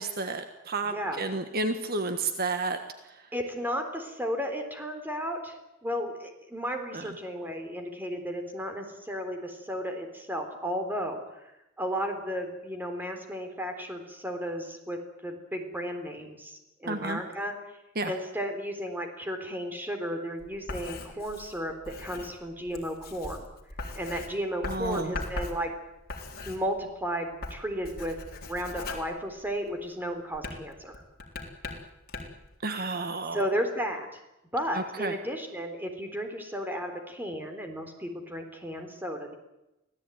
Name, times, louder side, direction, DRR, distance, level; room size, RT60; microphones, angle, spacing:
voice 1, 0.0-2.8 3.1-3.3 6.9-7.1 16.8-17.2 17.9-18.1 24.7-25.2 32.6-33.5 34.7-35.2, right 3 dB, 50° right, 7 dB, 1.5 m, -31 dB
voice 2, 0.9-1.2 3.3-5.6 5.8-11.5 11.8-17.5 18.0-23.5 23.9-25.7 26.5-28.2 28.4-31.0 33.3-34.1 34.5-39.4, equal, 10° right, 5 dB, 3.7 m, -34 dB
Writing, 20.4-27.0 27.3-29.8 30.3-32.5, left 2 dB, 50° left, 3.8 m, -40 dB
25.0 x 16.5 x 9.2 m, 0.92 s
head